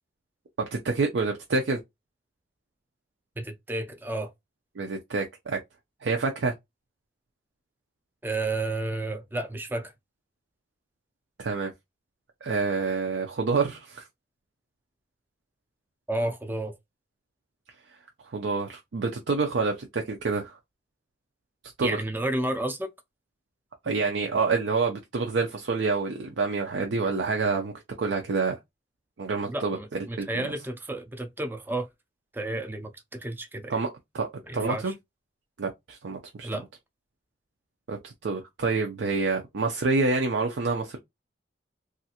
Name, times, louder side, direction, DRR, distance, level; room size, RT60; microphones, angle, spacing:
voice 1, 0.6-1.8 4.8-5.6 6.0-6.5 11.4-11.7 12.4-14.0 18.3-20.6 21.8-22.0 23.8-27.7 28.0-28.6 29.2-30.4 33.7-33.9 34.1-34.3 34.5-34.9 35.6-36.5 37.9-41.0, right 4 dB, 75° right, 0.5 m, -27 dB
voice 2, 3.4-4.3 8.2-9.9 16.1-16.8 21.8-22.9 29.5-31.9 32.3-33.7 34.5-34.9 36.4-36.6, right 2 dB, 10° right, 0.4 m, -31 dB
3.1 x 2.4 x 2.8 m
head